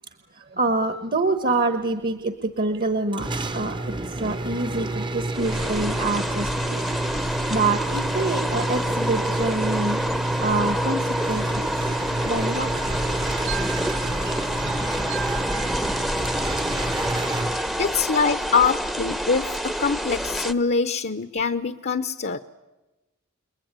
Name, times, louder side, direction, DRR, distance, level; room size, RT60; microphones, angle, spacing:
voice 1, 0.3-6.8 7.5-10.0 10.4-12.7 14.6-14.7, right 3 dB, 45° right, 10 dB, 1.4 m, -26 dB
sound 1, 3.1-18.1, right 2 dB, 25° right, 0.9 m, -29 dB
sound 2, 5.3-20.5, equal, ahead, 0.8 m, -28 dB
sound 3, 13.5-16.6, right 10 dB, 60° right, 3.3 m, -38 dB
voice 2, 17.8-22.4, left 5 dB, 50° left, 10 dB, 0.9 m, -24 dB
29.5 x 21.0 x 9.7 m, 1.1 s
head